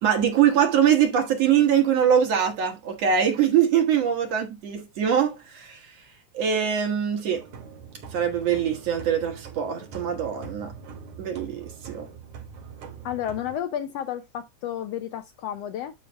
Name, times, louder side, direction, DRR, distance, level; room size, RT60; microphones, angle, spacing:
voice 1, 0.0-5.8 6.3-7.4 8.1-10.7 11.2-12.1, right 8 dB, 60° right, 2.5 m, -23 dB
sound 1, 7.3-13.6, right 6 dB, 90° right, 3.5 m, -43 dB
voice 2, 13.0-15.9, left 10 dB, 75° left, 1.6 m, -31 dB
12.0 x 4.9 x 2.3 m
omnidirectional pair, 3.4 m